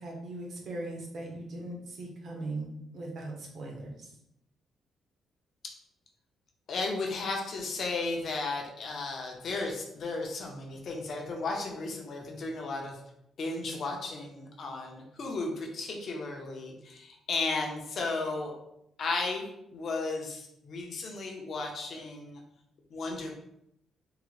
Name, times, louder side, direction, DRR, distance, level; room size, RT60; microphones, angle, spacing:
voice 1, 0.0-4.1, right 2 dB, 45° right, 0 dB, 0.7 m, -39 dB
voice 2, 6.7-13.0 13.4-18.5 19.0-19.4 19.7-22.4 22.9-23.3, left 3 dB, 40° left, 1 dB, 0.6 m, -34 dB
3.7 x 2.1 x 3.1 m, 0.79 s
cardioid pair, 175°, 0 cm